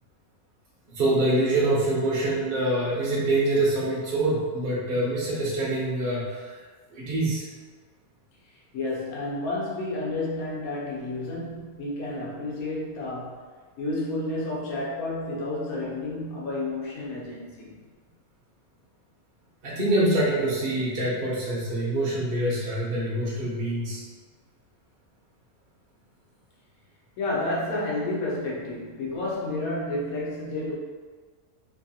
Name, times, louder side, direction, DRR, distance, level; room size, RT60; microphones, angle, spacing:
voice 1, 0.9-6.4 6.9-7.4 19.6-24.0, right 1 dB, 50° right, -6 dB, 0.7 m, -25 dB
voice 2, 8.7-13.4 13.8-17.8 27.2-30.7, left 2 dB, 80° left, -4 dB, 1.2 m, -30 dB
3.0 x 2.4 x 2.7 m, 1.5 s
omnidirectional pair, 1.5 m